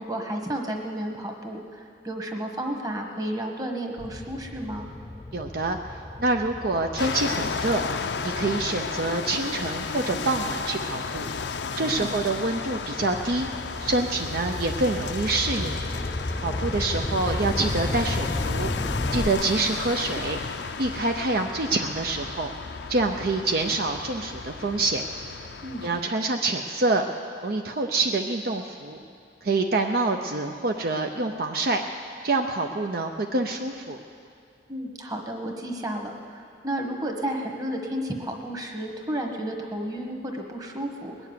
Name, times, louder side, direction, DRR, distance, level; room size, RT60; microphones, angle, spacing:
voice 1, 0.0-4.9 12.0-12.1 25.6-25.8 34.7-41.3, right 1 dB, 20° right, 2 dB, 1.4 m, -32 dB
sound 1, 4.0-10.7 11.3-19.3, left 2 dB, 20° left, 0.4 m, -34 dB
voice 2, 5.3-7.8 8.2-11.3 11.7-13.5 13.8-15.8 16.4-18.7 19.1-20.4 20.8-22.5 22.9-25.0 25.8-27.1 27.4-29.0 29.4-31.8 32.2-34.0, right 2 dB, 55° right, 3 dB, 0.6 m, -26 dB
sound 2, 7.0-26.0, left 5 dB, 70° left, 0.6 m, -33 dB
20.5 x 7.2 x 9.6 m, 2.5 s
head